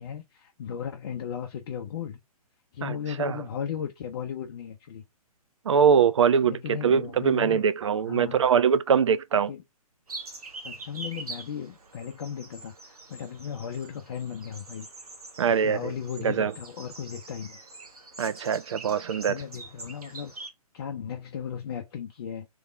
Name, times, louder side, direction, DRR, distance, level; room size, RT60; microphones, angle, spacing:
voice 1, 0.0-2.2 2.7-5.0 6.4-7.6 8.1-8.5 9.5-9.6 10.6-14.9 15.6-17.6 19.3-20.3 20.7-22.5, left 8 dB, 40° left, 0.7 m, -36 dB
voice 2, 2.8-3.4 5.7-9.5 15.4-15.9 16.2-16.5 18.2-19.4, right 7 dB, 50° right, 0.4 m, -23 dB
sound 1, 10.1-20.5, right 3 dB, 70° right, 1.2 m, -44 dB
3.5 x 3.4 x 3.5 m
figure-of-eight pair, 125°, 20 cm